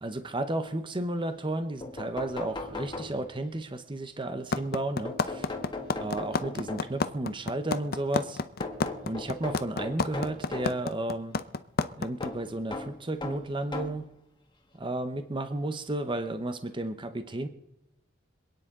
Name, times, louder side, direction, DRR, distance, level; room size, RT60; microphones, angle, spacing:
voice 1, 0.0-5.5 6.0-8.4 9.0-11.4 12.0-14.0 14.7-17.5, right 1 dB, 25° right, 8 dB, 0.8 m, -33 dB
sound 1, 1.5-1.6 1.8-3.6 5.1-7.1 8.6-10.8 12.2-14.1 14.9-15.0 16.4-16.5 16.8-16.9, left 2 dB, 25° left, 1.6 m, -38 dB
sound 2, 4.5-12.3, left 4 dB, 50° left, 0.7 m, -28 dB
26.5 x 9.7 x 3.7 m, 0.86 s
head